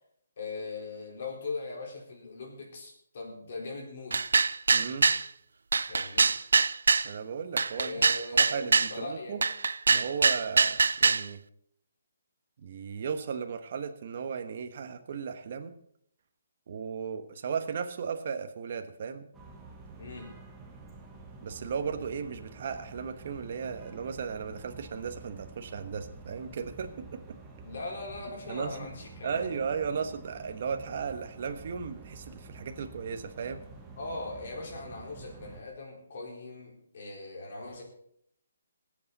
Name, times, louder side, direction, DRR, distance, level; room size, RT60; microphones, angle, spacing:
voice 1, 0.4-4.2 5.9-6.3 7.8-9.4 20.0-20.3 27.6-29.4 34.0-37.8, left 3 dB, 50° left, -1 dB, 4.5 m, -40 dB
sound 1, 4.1-5.2 5.7-7.1 7.6-8.9 9.4-11.3, right 4 dB, 85° right, 0.4 m, -23 dB
voice 2, 4.7-5.1 7.0-8.0 8.4-9.4 9.9-11.4 12.6-15.7 16.7-19.3 21.4-27.4 28.5-28.9 29.2-33.6, right 6 dB, 45° right, 7 dB, 1.3 m, -36 dB
sound 2, 19.3-35.6, right 3 dB, 5° right, 1.4 m, -49 dB
20.0 x 8.6 x 4.2 m, 0.68 s
hypercardioid pair, 170°, 0 cm